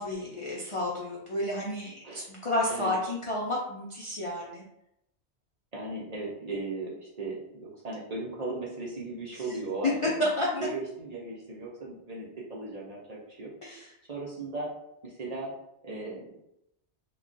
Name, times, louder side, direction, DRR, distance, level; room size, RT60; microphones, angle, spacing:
voice 1, 0.0-4.6 9.3-9.6 10.2-10.7 13.6-13.9, left 1 dB, 50° left, -4 dB, 0.4 m, -31 dB
voice 2, 5.7-10.3 10.6-13.5 14.1-14.7 15.0-15.5 15.8-16.3, right 2 dB, 45° right, -4 dB, 0.6 m, -37 dB
2.3 x 2.2 x 3.8 m, 0.81 s
omnidirectional pair, 1.1 m